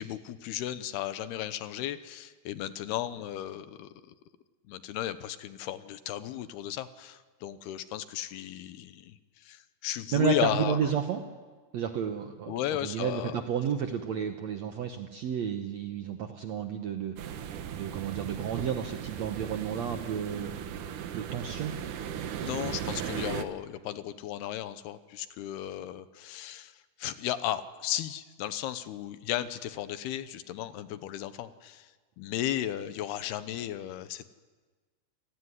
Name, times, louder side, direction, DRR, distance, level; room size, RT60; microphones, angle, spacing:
voice 1, 0.0-3.9 4.7-10.9 12.5-13.4 22.4-26.7 27.0-31.9 32.2-34.3, left 12 dB, 75° left, 12 dB, 2.8 m, -35 dB
voice 2, 10.1-11.2 11.7-12.5 12.8-17.5 17.7-20.5 21.1-21.8, right 8 dB, 85° right, 6 dB, 1.5 m, -31 dB
sound 1, 17.2-23.4, right 9 dB, 65° right, 2.2 m, -37 dB
29.5 x 18.0 x 9.7 m, 1.4 s
omnidirectional pair, 4.9 m